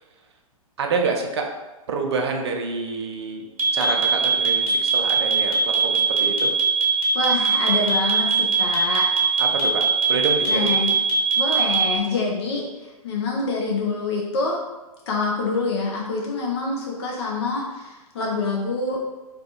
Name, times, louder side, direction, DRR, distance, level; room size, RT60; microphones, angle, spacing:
voice 1, 0.8-1.5 1.9-3.5 3.7-6.5 9.4-10.7, right 4 dB, 45° right, 2 dB, 0.4 m, -27 dB
sound 1, 3.6-12.0, right 5 dB, 70° right, 0.8 m, -20 dB
voice 2, 7.1-9.1 10.5-11.0 11.4-14.6 15.1-19.0, left 3 dB, 45° left, -2 dB, 0.4 m, -26 dB
2.3 x 2.3 x 2.5 m, 1.1 s
figure-of-eight pair, 110°, 19 cm